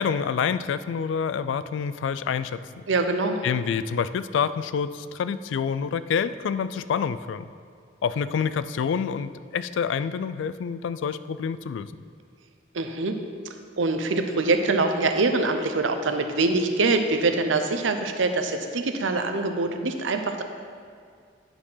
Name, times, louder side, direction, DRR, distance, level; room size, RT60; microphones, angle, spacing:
voice 1, 0.0-2.8 3.4-7.5 8.0-11.9, left 6 dB, 75° left, 14 dB, 0.3 m, -27 dB
voice 2, 2.9-3.4 12.7-13.2 13.8-20.4, right 3 dB, 80° right, 6 dB, 0.7 m, -24 dB
9.9 x 4.4 x 5.6 m, 2.2 s
head